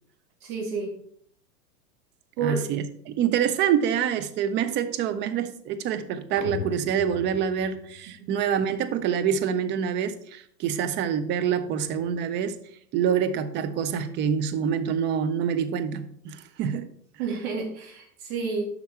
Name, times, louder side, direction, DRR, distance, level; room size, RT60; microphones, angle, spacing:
voice 1, 0.4-0.9 2.4-2.6 8.2-8.3 17.2-18.6, right 5 dB, 60° right, 3.1 m, -30 dB
voice 2, 2.4-12.6 12.9-16.9, right 8 dB, 25° right, 0.5 m, -26 dB
sound 1, 6.4-8.5, left 8 dB, 80° left, 0.8 m, -38 dB
7.8 x 5.7 x 4.4 m
hypercardioid pair, 110°, 49 cm